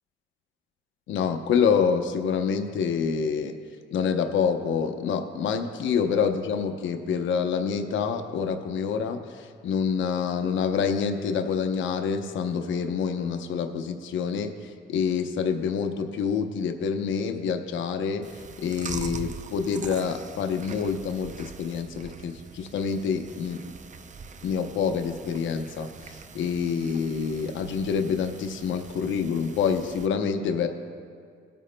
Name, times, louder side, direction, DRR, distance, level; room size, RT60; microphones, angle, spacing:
voice 1, 1.1-3.5 3.9-18.2 18.6-23.6 24.4-30.7, left 6 dB, 75° left, 6 dB, 0.8 m, -27 dB
Chewing mastication, 18.2-30.1, right 5 dB, 40° right, 0.6 m, -43 dB
18.5 x 9.0 x 2.2 m, 2.1 s
cardioid pair, 90°, 20 cm